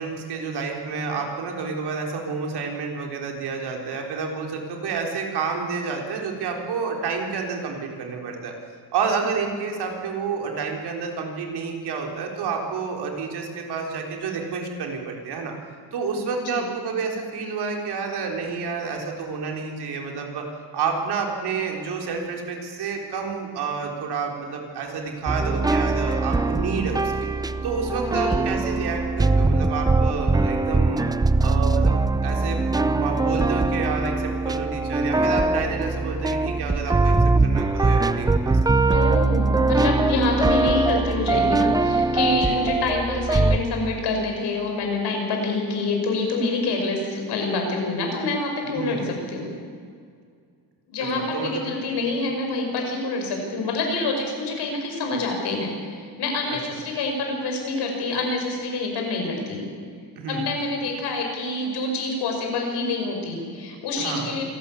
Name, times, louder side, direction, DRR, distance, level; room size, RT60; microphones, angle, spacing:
voice 1, 0.0-8.5 8.9-15.5 15.9-20.4 20.7-27.1 27.6-31.1 31.4-37.2 37.4-38.6 42.3-42.6 48.7-49.0 51.0-51.7 56.5-56.6 60.2-60.4 64.0-64.4, right 5 dB, 75° right, 1 dB, 4.0 m, -29 dB
sound 1, 25.3-43.6, right 3 dB, 10° right, 0.5 m, -22 dB
voice 2, 28.1-28.5 38.8-49.5 50.9-59.6 60.3-64.4, left 3 dB, 75° left, 2 dB, 5.4 m, -26 dB
26.0 x 12.5 x 8.5 m, 2.2 s
cardioid pair, 140°, 40 cm